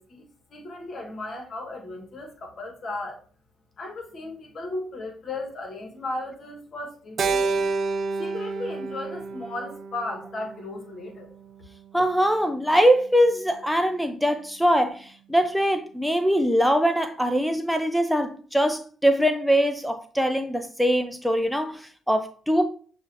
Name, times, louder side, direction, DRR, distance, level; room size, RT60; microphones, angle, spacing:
voice 1, 0.0-3.2 3.8-7.7 8.2-11.3, left 2 dB, 55° left, 1.3 m, -36 dB
Keyboard (musical), 7.2-11.6, right 4 dB, 55° right, 0.4 m, -29 dB
voice 2, 11.9-22.7, equal, ahead, 0.4 m, -22 dB
7.0 x 2.5 x 2.7 m
hypercardioid pair, 55°, 0 cm